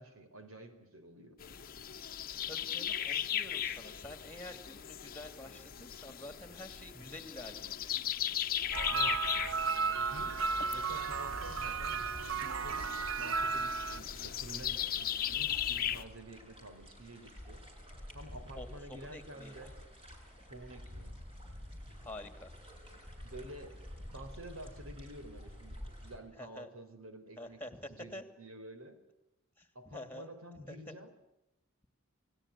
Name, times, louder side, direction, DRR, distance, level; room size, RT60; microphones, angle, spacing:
voice 1, 0.0-1.4 1.8-1.9 6.9-7.2 8.9-9.2 10.0-10.4 10.7-12.1 12.4-12.9 13.2-17.6 18.1-19.7 20.5-21.2 23.2-23.8 24.1-27.6 27.9-29.0 29.7-31.1, right 1 dB, 85° right, 8 dB, 4.5 m, -50 dB
sound 1, 1.4-16.0, left 10 dB, 45° left, 1.0 m, -38 dB
voice 2, 2.5-7.9 18.5-19.6 22.0-22.5 26.4-26.7 27.4-28.2 29.6-30.3 30.7-30.9, left 1 dB, 10° left, 9 dB, 2.7 m, -48 dB
sound 2, 8.6-26.2, equal, 25° right, 5.9 m, -50 dB
sound 3, 8.7-14.0, right 5 dB, 70° right, 0.9 m, -34 dB
29.0 x 18.5 x 8.5 m, 0.89 s
head